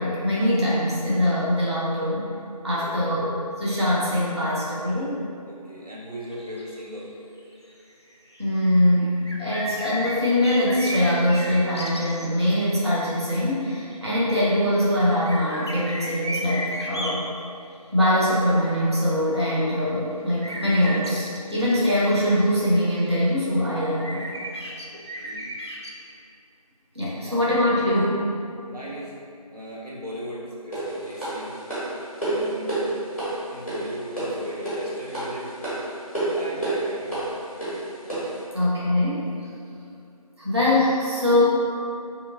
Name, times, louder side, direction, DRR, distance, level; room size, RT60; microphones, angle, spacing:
voice 1, 0.0-2.3 2.6-3.3 3.6-5.2 8.4-17.2 17.9-24.2 26.9-28.3 38.5-39.3 40.4-41.5, left 1 dB, 45° right, -8 dB, 0.7 m, -22 dB
voice 2, 2.7-3.2 5.5-7.1 24.9-25.5 27.2-27.4 28.7-29.2 29.5-31.5 32.2-33.0 33.5-35.5 35.8-35.9 36.3-37.3, equal, 90° right, -6 dB, 0.9 m, -37 dB
sound 1, 6.3-6.9 7.4-7.5 7.7-7.8 8.1-8.4 8.8-13.0 13.9-14.2 14.5-17.3 20.4-23.1 23.3-23.4 23.8-26.1, equal, 45° left, 0.4 m, -34 dB
sound 2, 30.7-38.4, right 2 dB, 20° left, 1.1 m, -29 dB
3.6 x 2.8 x 2.6 m, 2.5 s
figure-of-eight pair, 170°, 19 cm